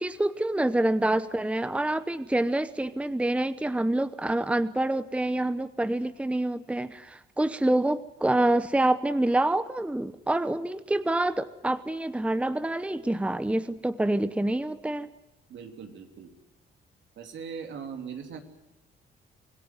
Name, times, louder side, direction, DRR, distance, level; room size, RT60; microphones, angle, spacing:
voice 1, 0.0-15.1, right 1 dB, 5° right, 13 dB, 0.9 m, -27 dB
voice 2, 15.5-16.3 17.2-18.4, right 6 dB, 70° right, 5 dB, 3.3 m, -40 dB
26.0 x 17.5 x 9.5 m, 0.93 s
cardioid pair, 90°, 20 cm